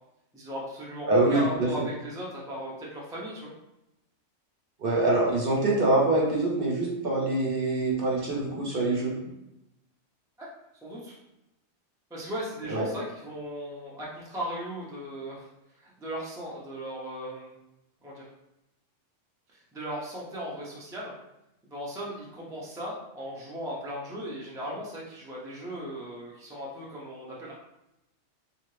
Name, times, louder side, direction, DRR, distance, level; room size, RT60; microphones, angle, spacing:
voice 1, 0.3-3.5 10.4-10.5 10.8-11.2 12.1-15.5 15.8-17.6 18.0-18.3 19.7-21.1 21.7-27.5, equal, 5° right, -5 dB, 0.4 m, -37 dB
voice 2, 1.1-1.9 4.8-9.2 12.7-12.9, right 2 dB, 55° right, -4 dB, 0.9 m, -25 dB
2.7 x 2.5 x 3.1 m, 0.89 s
omnidirectional pair, 1.3 m